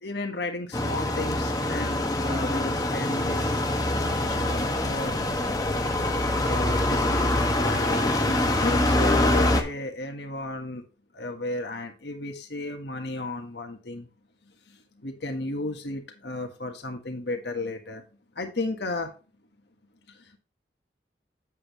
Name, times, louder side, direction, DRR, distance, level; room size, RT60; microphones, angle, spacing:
voice 1, 0.0-5.2 6.4-10.8 11.1-14.1 14.7-18.0 18.3-19.1 20.1-20.4, left 2 dB, 70° left, 3 dB, 1.6 m, -34 dB
sound 1, 0.7-9.6, left 1 dB, 20° left, 1.0 m, -24 dB
8.4 x 7.6 x 3.1 m, 0.33 s
head